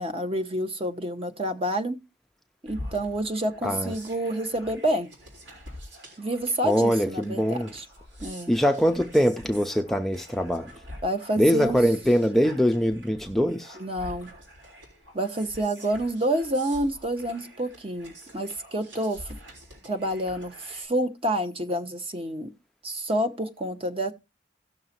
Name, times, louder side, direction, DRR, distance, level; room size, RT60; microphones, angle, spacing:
voice 1, 0.0-2.0 2.6-5.1 6.2-7.8 8.2-8.5 11.0-11.8 13.8-14.3 15.1-19.4 19.8-22.5 22.8-24.1, right 1 dB, 30° right, 1.0 m, -28 dB
sound 1, 2.7-20.9, equal, 75° right, 4.1 m, -46 dB
voice 2, 3.6-3.9 6.6-7.7 8.5-10.7 11.4-13.8, equal, ahead, 0.5 m, -23 dB
17.0 x 6.5 x 2.9 m
head